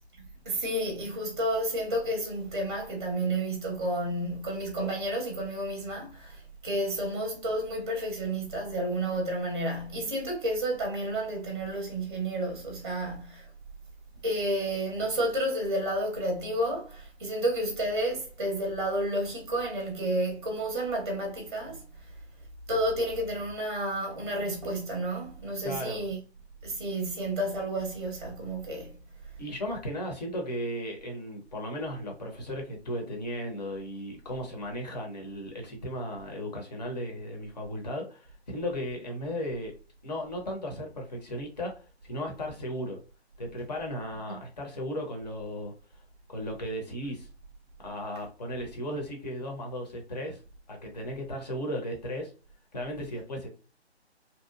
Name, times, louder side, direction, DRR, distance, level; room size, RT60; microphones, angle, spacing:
voice 1, 0.4-13.5 14.2-21.8 22.7-26.2 26.6-29.0, right 1 dB, 25° right, 0.7 m, -31 dB
voice 2, 25.6-26.0 29.4-39.7 40.0-43.0 43.4-45.7 46.3-47.3 47.8-50.4 50.7-52.3 52.7-53.5, equal, 40° left, 0.9 m, -35 dB
2.7 x 2.3 x 2.4 m
figure-of-eight pair, 150°, 34 cm